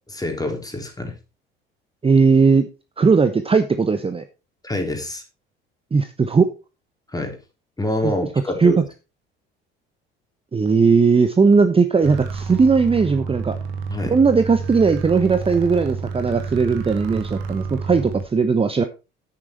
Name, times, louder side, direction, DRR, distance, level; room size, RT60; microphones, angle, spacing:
voice 1, 0.1-1.1 4.6-5.2 7.1-7.4 7.8-8.8 13.9-14.2, left 1 dB, 10° left, 4 dB, 3.6 m, -26 dB
voice 2, 2.0-2.7 3.0-4.2 5.9-6.5 8.0-8.1 8.6-8.8 10.5-13.6 14.1-18.8, right 5 dB, 20° right, 10 dB, 1.0 m, -17 dB
sound 1, 12.0-18.3, right 5 dB, 65° right, 2.1 m, -30 dB
10.0 x 8.7 x 4.4 m, 0.29 s
figure-of-eight pair, 55°, 30 cm